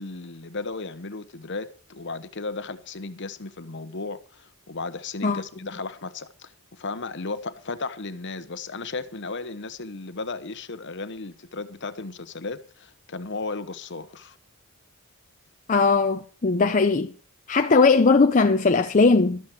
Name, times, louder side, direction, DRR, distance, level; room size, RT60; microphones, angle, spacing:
voice 1, 0.0-14.4, left 3 dB, 55° left, 1.0 m, -35 dB
voice 2, 15.7-17.1 17.5-19.4, left 4 dB, 35° left, 0.6 m, -19 dB
12.5 x 12.0 x 4.5 m
head